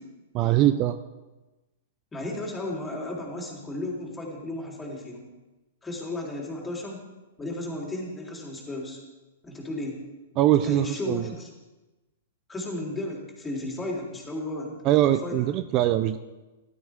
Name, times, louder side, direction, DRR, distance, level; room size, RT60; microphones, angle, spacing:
voice 1, 0.3-1.0 10.4-11.3 14.8-16.2, right 13 dB, 35° right, 11 dB, 0.5 m, -22 dB
voice 2, 2.1-5.3 5.8-7.0 7.4-9.0 9.4-10.0 10.6-11.5 12.5-14.8 15.2-15.4, left 1 dB, 15° left, -2 dB, 3.7 m, -34 dB
16.0 x 12.5 x 3.7 m, 1.1 s
hypercardioid pair, 120°, 0 cm